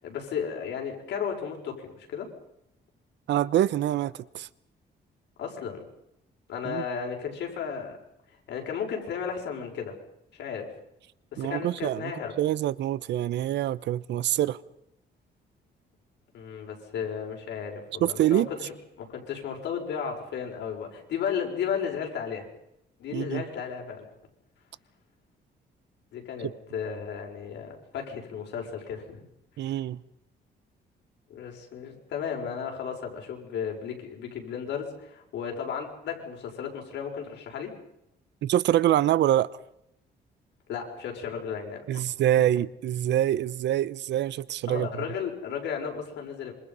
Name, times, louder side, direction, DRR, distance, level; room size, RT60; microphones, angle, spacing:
voice 1, 0.0-2.3 5.4-5.8 6.5-8.0 8.5-10.0 10.3-10.7 11.3-12.4 16.3-22.5 23.0-24.1 26.1-29.3 31.3-37.7 40.7-42.0 42.4-42.5 44.7-46.5, left 7 dB, 90° left, 5.9 m, -34 dB
voice 2, 3.3-4.5 6.6-6.8 11.4-12.1 12.4-14.6 18.0-18.5 23.1-23.4 29.6-30.0 38.4-39.5 41.9-44.9, right 12 dB, 85° right, 0.9 m, -25 dB
27.0 x 25.0 x 5.6 m
cardioid pair, 145°, 18 cm